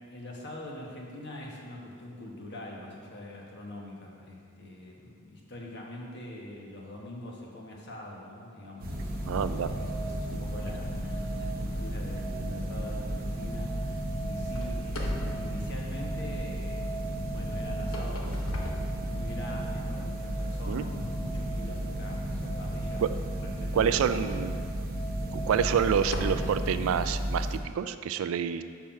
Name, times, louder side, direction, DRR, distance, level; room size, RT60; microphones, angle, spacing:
voice 1, 0.0-18.4 19.1-23.1 23.4-24.4, left 1 dB, 55° left, -2 dB, 1.1 m, -44 dB
sound 1, 8.5-26.5, right 4 dB, 35° left, 0.9 m, -43 dB
sound 2, 8.8-27.6, equal, 45° right, 0.8 m, -33 dB
voice 2, 9.2-9.7 10.3-10.4 20.7-20.8 23.0-23.1 23.7-24.5 25.3-28.6, right 7 dB, 75° right, 11 dB, 0.3 m, -28 dB
sound 3, 14.5-16.5 17.6-19.6 20.2-20.4 21.0-21.1 23.8-23.9 24.5-24.6 25.4-26.7, left 1 dB, 85° left, 0.8 m, -39 dB
5.6 x 4.7 x 5.7 m, 2.2 s
head